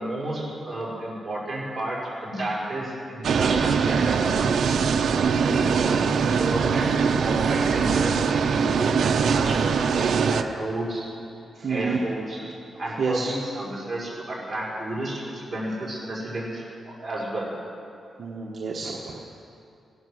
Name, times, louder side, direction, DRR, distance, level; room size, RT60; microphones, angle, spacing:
voice 1, 0.0-4.5 5.5-11.1 11.6-12.4 12.8-17.5, right 1 dB, 15° right, -7 dB, 4.9 m, -31 dB
sound 1, 3.2-10.4, right 6 dB, 65° right, 0.6 m, -22 dB
voice 2, 5.2-5.6 11.6-12.0 13.0-13.3 18.2-19.2, right 4 dB, 45° right, -2 dB, 1.2 m, -29 dB
18.5 x 11.0 x 6.3 m, 2.6 s
wide cardioid pair, 155°, 0 cm